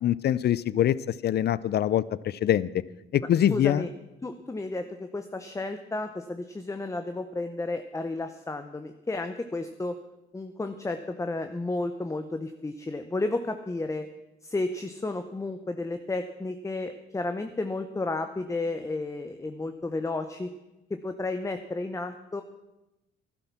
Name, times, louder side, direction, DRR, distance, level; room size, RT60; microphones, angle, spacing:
voice 1, 0.0-2.7 3.1-3.8, left 11 dB, 55° left, 20 dB, 0.5 m, -24 dB
voice 2, 3.5-3.9 4.2-10.0 10.3-14.1 14.4-20.5 20.9-22.4, left 2 dB, 15° left, 8 dB, 0.8 m, -32 dB
11.5 x 11.5 x 6.0 m, 0.96 s
cardioid pair, 90°, 20 cm